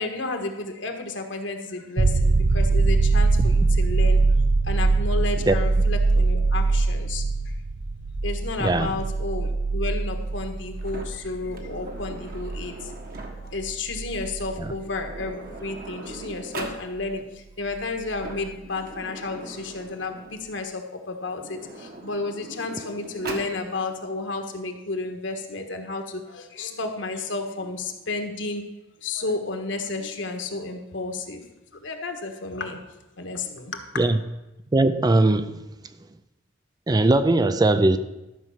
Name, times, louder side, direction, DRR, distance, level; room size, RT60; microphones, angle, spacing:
voice 1, 0.0-4.2 4.6-7.5 8.2-12.9 13.4-28.6 29.0-31.4 31.7-32.8 33.2-33.9, left 3 dB, 70° left, 5 dB, 1.4 m, -32 dB
sound 1, 2.0-15.5 18.2-18.3, right 3 dB, 75° right, 0.7 m, -23 dB
voice 2, 8.6-8.9 14.6-14.7 34.0-34.2 34.7-35.6 36.9-38.0, right 2 dB, 20° right, 11 dB, 0.4 m, -20 dB
Sliding door, 10.8-13.6 14.6-14.7 15.0-16.8 18.0-20.5 21.3-23.6, right 2 dB, 50° right, 1.5 m, -40 dB
12.5 x 5.4 x 7.2 m, 0.99 s
head